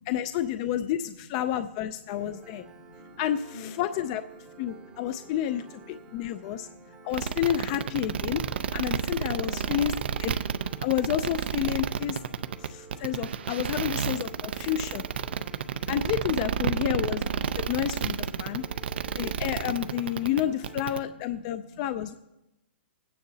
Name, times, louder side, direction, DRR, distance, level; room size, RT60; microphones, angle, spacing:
voice 1, 0.1-2.6 3.2-4.2 4.6-6.7 7.0-8.4 8.7-9.9 10.2-10.3 10.8-12.2 12.6-15.0 15.9-17.2 17.6-18.6 19.1-22.1, left 11 dB, 35° left, 10 dB, 0.4 m, -30 dB
voice 2, 2.1-3.2 3.5-4.0 4.7-4.8 6.1-6.9 9.2-9.8 12.3-12.6 14.3-14.7 15.3-15.6 17.6-17.7 18.4-19.2 21.6-21.8, left 4 dB, 85° left, 0 dB, 5.1 m, -50 dB
Piano, 2.1-21.1, right 5 dB, 15° right, 0.8 m, -51 dB
sound 1, 7.1-21.0, right 7 dB, 70° right, 0.6 m, -30 dB
21.0 x 9.6 x 2.7 m, 0.93 s
hypercardioid pair, 150°, 6 cm